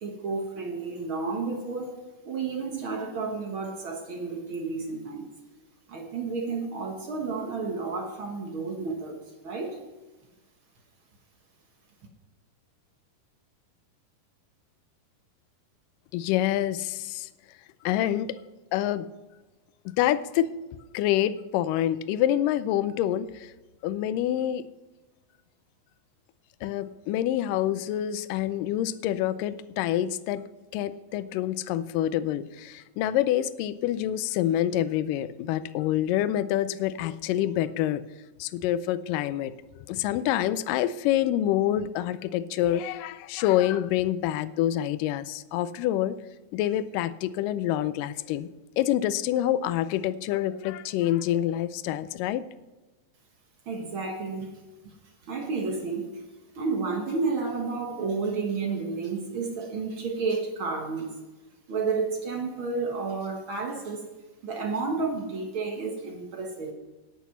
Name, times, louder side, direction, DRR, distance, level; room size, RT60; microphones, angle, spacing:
voice 1, 0.0-5.3 5.9-9.2 9.4-9.8 53.7-54.5 55.2-56.1 56.5-61.2 61.7-64.1 64.4-66.7, right 4 dB, 60° right, 2 dB, 1.3 m, -31 dB
voice 2, 16.1-17.3 17.9-18.4 18.7-19.1 20.0-20.5 20.9-23.3 23.8-24.6 26.6-30.4 30.7-38.0 38.4-39.5 39.9-46.2 46.5-48.5 48.8-52.4, left 12 dB, 80° left, 14 dB, 2.1 m, -27 dB
10.5 x 10.5 x 5.8 m, 1.2 s
omnidirectional pair, 4.2 m